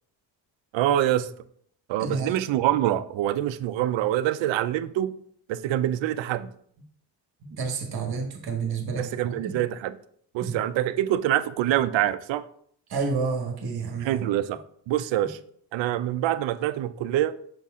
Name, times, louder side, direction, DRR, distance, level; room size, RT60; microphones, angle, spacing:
voice 1, 0.7-1.3 1.9-5.1 5.5-6.5 9.0-10.0 10.3-12.5 14.0-15.4 15.7-17.4, right 12 dB, 80° right, 0.5 m, -25 dB
voice 2, 2.0-2.3 7.4-9.6 10.4-10.5 12.9-14.2, right 4 dB, 55° right, 1.3 m, -30 dB
6.6 x 4.1 x 3.6 m
cardioid pair, 100°, 45 cm